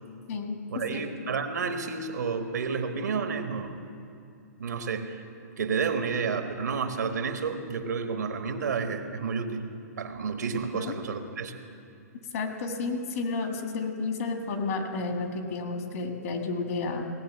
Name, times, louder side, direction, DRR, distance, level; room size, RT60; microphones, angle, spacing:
voice 1, 0.7-3.7 4.6-5.2 5.6-9.7 10.0-11.5, right 5 dB, 85° right, 6 dB, 1.3 m, -30 dB
voice 2, 12.3-17.1, left 3 dB, 55° left, 4 dB, 1.7 m, -31 dB
17.5 x 6.6 x 7.5 m, 2.5 s
hypercardioid pair, 150°, 9 cm